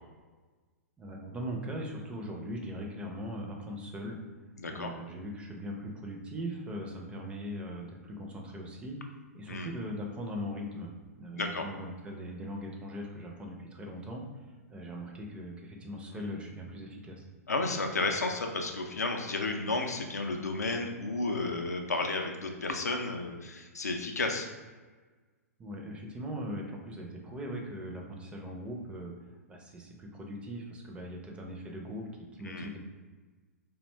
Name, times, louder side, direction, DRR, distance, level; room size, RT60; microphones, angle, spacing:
voice 1, 1.0-4.2 4.7-9.0 9.3-10.9 11.2-14.2 14.7-17.2 25.6-29.1 29.5-32.8, equal, 10° right, 0 dB, 0.4 m, -40 dB
voice 2, 4.6-4.9 9.5-9.7 11.4-11.6 16.1-16.3 17.5-24.5 32.4-32.7, left 3 dB, 85° left, 3 dB, 0.4 m, -32 dB
2.5 x 2.1 x 3.1 m, 1.3 s
figure-of-eight pair, 110°, 9 cm